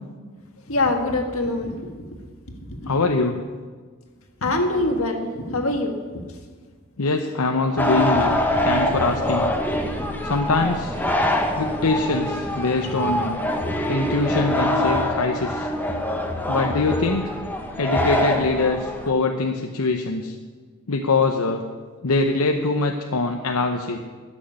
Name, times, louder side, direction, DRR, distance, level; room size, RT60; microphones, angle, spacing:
voice 1, 0.7-2.2 2.7-2.8 4.4-6.2, left 2 dB, 70° left, 4 dB, 1.8 m, -24 dB
voice 2, 2.9-3.4 7.0-9.5 10.2-11.0 11.6-13.4 13.9-15.7 16.5-17.3 17.8-20.4 20.9-21.6 22.0-24.0, left 3 dB, 90° left, 4 dB, 0.8 m, -23 dB
sound 1, 7.8-19.1, left 1 dB, 10° left, 1.2 m, -24 dB
13.0 x 6.5 x 9.9 m, 1.5 s
head